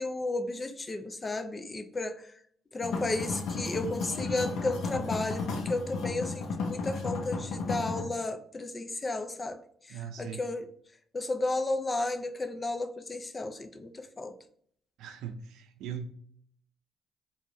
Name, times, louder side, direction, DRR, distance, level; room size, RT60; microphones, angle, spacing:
voice 1, 0.0-2.3 2.7-9.6 9.9-10.7 11.1-14.3, left 2 dB, 25° left, 0.5 m, -33 dB
sound 1, 2.8-8.0, left 4 dB, 80° left, 0.9 m, -34 dB
voice 2, 9.9-10.4 15.0-16.1, right 7 dB, 90° right, 0.5 m, -39 dB
4.6 x 2.8 x 2.7 m
cardioid pair, 90°, 0 cm